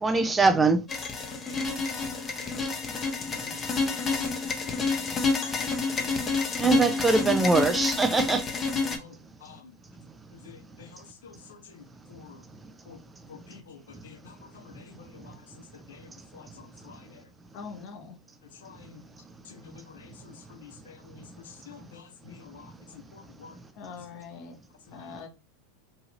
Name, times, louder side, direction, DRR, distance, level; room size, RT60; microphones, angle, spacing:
voice 1, 0.0-0.8 6.6-8.4, right 3 dB, 15° right, 0.4 m, -22 dB
sound 1, 0.9-9.0, left 4 dB, 25° left, 0.7 m, -29 dB
voice 2, 3.5-4.2 4.6-4.7 5.4-5.6 6.0-6.1 9.0-9.1 9.4-9.6 10.5-10.9 11.2-11.3 12.1-12.4 12.9-13.0 13.3-13.8 14.0-14.2 15.9-16.0 16.3-16.4 16.9-17.0 18.6-18.9 19.8-19.9 20.6-21.1 21.7-22.6 23.4-23.5, left 7 dB, 75° left, 0.6 m, -48 dB
voice 3, 17.5-18.2 23.7-24.6 24.9-25.3, left 5 dB, 50° left, 0.9 m, -42 dB
2.7 x 2.4 x 2.9 m
hypercardioid pair, 90°, 0 cm